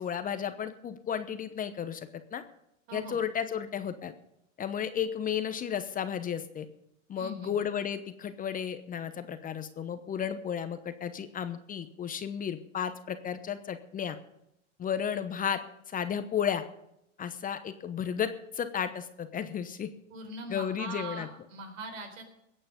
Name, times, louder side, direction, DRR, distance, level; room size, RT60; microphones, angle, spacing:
voice 1, 0.0-2.4 2.9-4.1 4.6-6.7 7.1-14.2 14.8-15.6 15.9-16.6 17.2-19.9 20.5-21.3, left 8 dB, 20° left, 10 dB, 1.0 m, -33 dB
voice 2, 2.9-3.2 7.2-7.5 20.1-22.2, right 2 dB, 75° right, 6 dB, 4.3 m, -41 dB
21.5 x 8.8 x 5.2 m, 0.79 s
hypercardioid pair, 115°, 38 cm